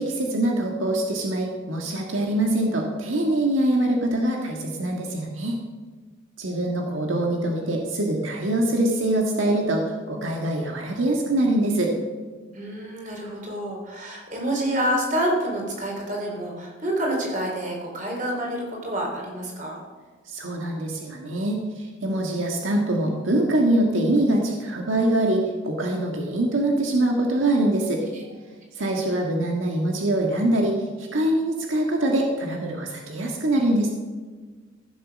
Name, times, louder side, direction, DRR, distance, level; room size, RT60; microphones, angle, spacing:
voice 1, 0.0-5.6 6.4-11.9 20.3-28.0 28.7-33.9, right 1 dB, 90° right, 0 dB, 1.7 m, -24 dB
voice 2, 12.5-19.8, right 1 dB, 40° right, -1 dB, 4.0 m, -28 dB
15.0 x 7.6 x 6.3 m, 1.4 s
head